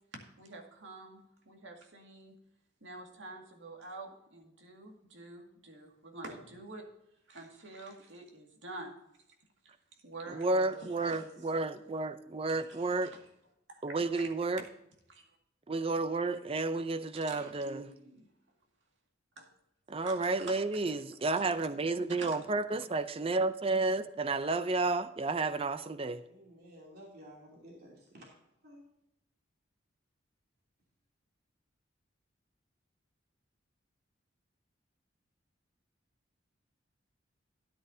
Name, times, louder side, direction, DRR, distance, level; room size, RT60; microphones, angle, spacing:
voice 1, 0.4-2.3 2.8-6.8 7.3-8.9 10.0-11.4 11.8-11.9 12.5-12.6 13.0-13.1 13.7-14.3 15.1-15.2 17.3-18.2 19.4-19.5 20.0-20.6 22.2-22.4 22.7-22.8, right 2 dB, 70° right, 2.1 m, -47 dB
voice 2, 10.3-13.1 13.8-14.6 15.7-17.9 19.9-26.2, right 3 dB, 30° right, 0.5 m, -31 dB
voice 3, 26.2-28.2 28.6-28.9, equal, 55° right, 2.9 m, -53 dB
13.0 x 10.0 x 2.7 m
head